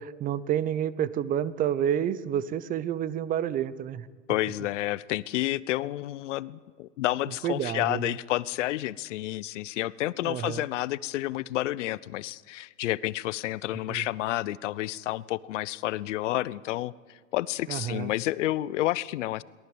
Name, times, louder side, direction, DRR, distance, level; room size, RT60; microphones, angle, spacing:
voice 1, 0.0-4.1 7.4-8.1 10.2-10.6 13.9-14.1 17.7-18.1, right 10 dB, 20° right, 18 dB, 0.7 m, -29 dB
voice 2, 4.3-19.4, left 15 dB, 65° left, 19 dB, 0.8 m, -30 dB
23.0 x 18.0 x 8.0 m, 1.5 s
hypercardioid pair, 130°, 40 cm